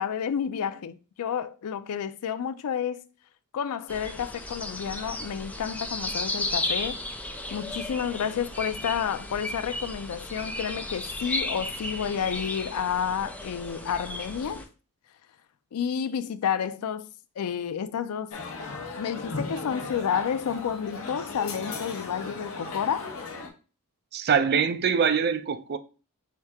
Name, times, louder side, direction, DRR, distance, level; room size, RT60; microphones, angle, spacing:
voice 1, 0.0-3.0 3.5-7.0 7.5-14.6 15.7-17.1 17.4-18.4 18.9-23.1, left 8 dB, 80° left, 0.4 m, -30 dB
sound 1, 3.9-14.6, left 2 dB, 5° left, 0.5 m, -34 dB
sound 2, 18.3-23.5, left 3 dB, 65° left, 0.8 m, -36 dB
voice 2, 24.1-25.8, right 6 dB, 45° right, 0.4 m, -23 dB
4.7 x 2.7 x 3.4 m
head